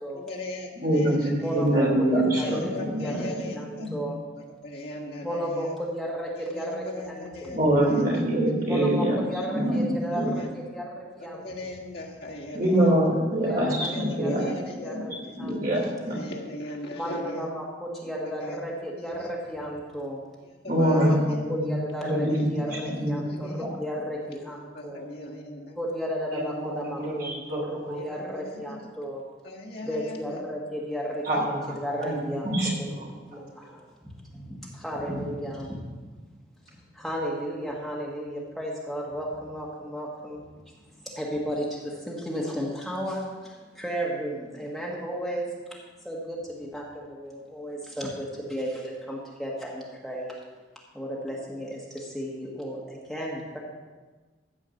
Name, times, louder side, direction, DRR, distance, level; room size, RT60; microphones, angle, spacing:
voice 1, 0.1-1.7 2.3-3.9 4.6-5.7 6.4-7.6 7.9-8.1 9.4-9.8 10.1-10.5 11.2-13.0 13.9-15.4 15.8-17.5 18.2-18.6 19.0-19.3 20.4-21.5 22.3-23.7 24.3-25.8 26.4-26.5 27.0-27.2 28.0-28.9 29.4-30.4 31.3-31.8, left 1 dB, 55° left, -2 dB, 1.7 m, -39 dB
voice 2, 0.8-3.3 3.8-3.9 7.5-9.2 9.5-10.3 12.5-14.5 14.9-15.1 15.4-16.2 20.7-23.7 26.3-28.0 31.2-33.1 33.6-33.7, right 1 dB, 50° right, -2 dB, 3.2 m, -25 dB
voice 3, 1.4-4.2 5.2-7.6 8.7-10.2 10.7-11.4 12.7-13.1 13.4-13.6 14.1-14.3 14.8-16.0 16.9-20.2 20.9-22.2 22.5-25.0 25.8-29.2 29.9-32.5 33.0-36.1 36.9-40.4 41.0-45.5 46.0-50.4 50.9-53.6, equal, ahead, -5 dB, 1.7 m, -34 dB
14.5 x 4.9 x 7.1 m, 1.3 s
head